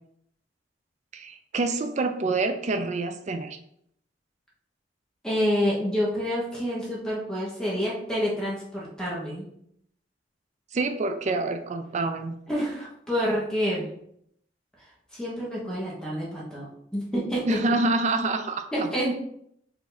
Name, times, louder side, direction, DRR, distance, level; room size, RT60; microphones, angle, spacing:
voice 1, 1.1-3.6 10.7-12.4 17.5-18.9, right 3 dB, 40° right, 7 dB, 0.4 m, -27 dB
voice 2, 5.2-9.5 12.5-13.9 15.1-17.8 18.7-19.1, equal, 5° left, -6 dB, 1.1 m, -28 dB
4.8 x 2.7 x 4.0 m, 0.70 s
head